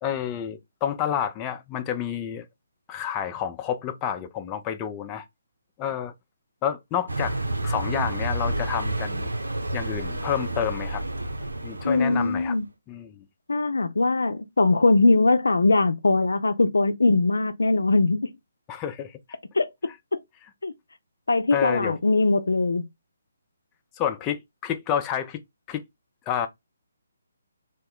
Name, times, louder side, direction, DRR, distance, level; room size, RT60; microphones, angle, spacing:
voice 1, 0.0-2.5 2.9-5.2 5.8-6.1 6.6-9.3 9.7-11.0 11.6-12.6 12.9-13.2 18.7-19.2 21.5-22.0 24.0-25.4 25.7-25.8 26.3-26.5, left 9 dB, 20° left, 0.4 m, -29 dB
Car passing by, 7.1-12.6, right 1 dB, 90° right, 0.6 m, -30 dB
voice 2, 11.8-12.6 13.5-18.3 19.5-19.7 20.6-20.7 21.3-22.9, left 3 dB, 80° left, 0.4 m, -21 dB
2.9 x 2.1 x 3.6 m
figure-of-eight pair, 145°, 0 cm